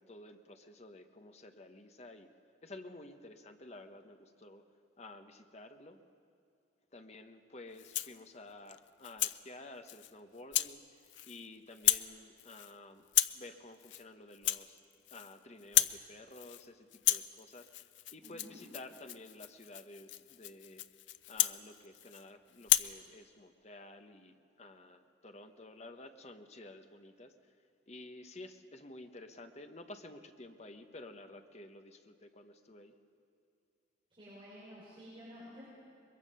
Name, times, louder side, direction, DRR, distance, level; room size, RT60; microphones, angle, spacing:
voice 1, 0.0-2.3 2.6-4.6 5.0-6.0 6.9-13.1 13.3-14.8 15.1-17.7 18.1-20.8 21.3-27.3 27.9-32.9, left 2 dB, 40° left, 7 dB, 1.0 m, -52 dB
Rattle (instrument), 7.7-8.2 8.7-9.4 9.9-10.1 10.5-10.7 11.0-11.5 11.7-12.1 12.4-12.7 13.1-13.4 13.8-14.0 14.3-15.3 15.6-16.0 16.3-16.7 16.9-22.2 22.6-22.9, left 14 dB, 90° left, 0.5 m, -33 dB
voice 2, 18.2-18.6 34.1-35.6, equal, 30° right, -10 dB, 5.7 m, -51 dB
22.5 x 22.0 x 5.6 m, 2.5 s
head